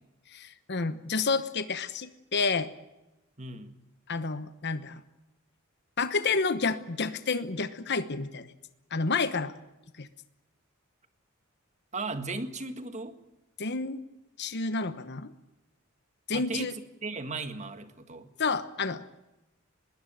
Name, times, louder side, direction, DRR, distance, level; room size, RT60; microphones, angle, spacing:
voice 1, 0.3-2.7 4.1-5.0 6.0-8.5 8.9-9.5 10.0-10.1 13.6-14.0 14.4-15.3 16.3-16.7 18.4-19.2, left 4 dB, 55° left, 12 dB, 1.1 m, -30 dB
voice 2, 3.4-3.8 11.9-13.2 16.3-18.3, right 3 dB, 35° right, 9 dB, 1.9 m, -36 dB
21.5 x 17.0 x 8.9 m, 0.99 s
head